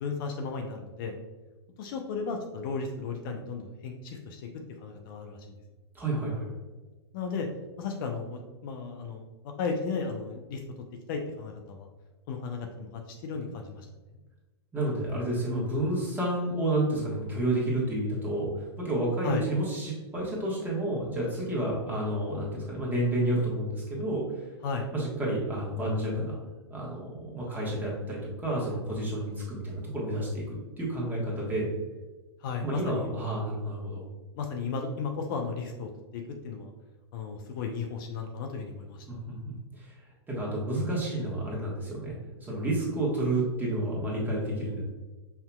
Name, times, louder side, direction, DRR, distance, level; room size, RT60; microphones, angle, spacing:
voice 1, 0.0-1.2 1.8-4.5 4.8-5.6 7.1-7.5 7.8-9.2 9.6-10.6 11.1-11.9 12.3-13.9 19.2-19.5 24.6-24.9 32.4-33.3 34.4-36.7 37.1-39.0, left 5 dB, 50° left, 3 dB, 0.5 m, -34 dB
voice 2, 5.9-6.5 14.7-24.2 24.9-26.4 26.7-30.4 30.8-31.7 32.6-34.0 39.1-39.9 40.3-42.1 42.4-44.8, right 1 dB, 15° right, -4 dB, 1.4 m, -30 dB
5.6 x 2.8 x 2.3 m, 1.2 s
hypercardioid pair, 115°, 14 cm